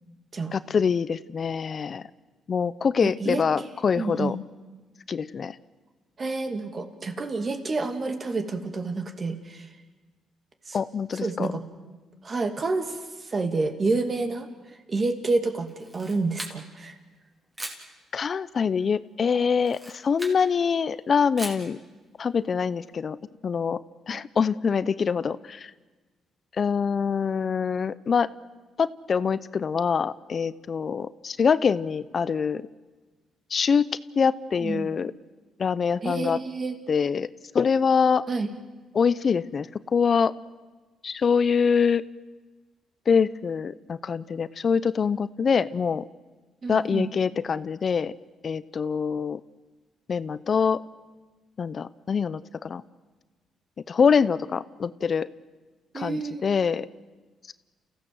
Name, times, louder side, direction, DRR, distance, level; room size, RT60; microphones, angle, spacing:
voice 1, 0.5-2.0 2.5-4.4 5.1-5.6 10.7-11.5 18.1-21.8 22.2-23.2 23.4-23.8 24.1-25.7 26.6-28.3 28.8-32.7 33.5-33.8 34.2-35.1 35.6-36.4 36.9-37.3 37.5-38.2 38.9-40.3 41.0-42.0 43.1-46.0 46.7-48.1 48.4-49.4 50.1-50.8 51.6-52.8 53.9-55.3 55.9-56.9 57.5-57.6, left 6 dB, 45° left, 17 dB, 0.7 m, -24 dB
voice 2, 3.0-3.4 4.0-4.4 6.2-9.7 10.7-10.8 11.2-11.6 12.2-14.5 14.9-17.0 34.6-34.9 36.0-36.7 38.3-38.5 46.6-47.1 55.9-56.4, right 3 dB, 35° right, 7 dB, 2.5 m, -29 dB
Camera, 15.7-16.9 17.5-17.9 19.6-20.4 21.4-21.7, right 1 dB, 15° right, 3.9 m, -39 dB
29.5 x 16.0 x 7.8 m, 1.3 s
cardioid pair, 90°, 0 cm